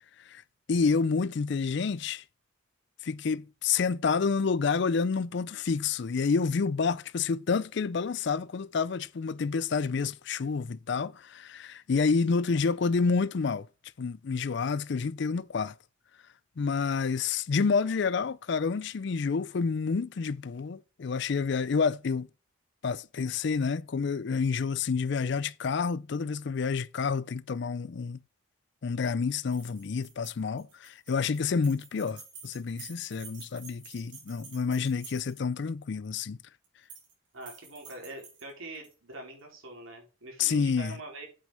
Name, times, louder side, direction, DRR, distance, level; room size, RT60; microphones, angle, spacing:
voice 1, 0.7-2.2 3.0-13.7 14.0-15.7 16.6-22.3 22.8-28.2 28.8-36.4 40.4-41.0, left 5 dB, 55° left, 0.4 m, -29 dB
sound 1, 29.5-35.6 36.6-37.1 37.4-38.9, right 5 dB, 60° right, 4.7 m, -50 dB
voice 2, 37.3-41.3, right 2 dB, 75° right, 4.3 m, -44 dB
8.3 x 6.4 x 5.0 m
head